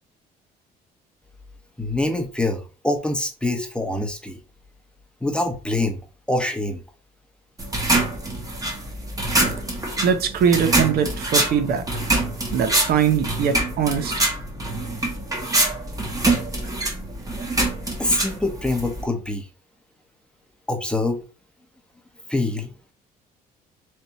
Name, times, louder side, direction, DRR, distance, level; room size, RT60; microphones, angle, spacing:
voice 1, 1.8-4.4 5.2-6.0 6.3-6.8 18.0-19.5 20.7-21.2 22.3-22.7, left 2 dB, 5° left, 0.9 m, -25 dB
sound 1, 7.6-19.1, right 2 dB, 20° right, 1.1 m, -25 dB
voice 2, 10.0-11.8 12.5-14.1, right 7 dB, 65° right, 0.7 m, -21 dB
3.5 x 2.7 x 4.0 m
cardioid pair, 110°, 17 cm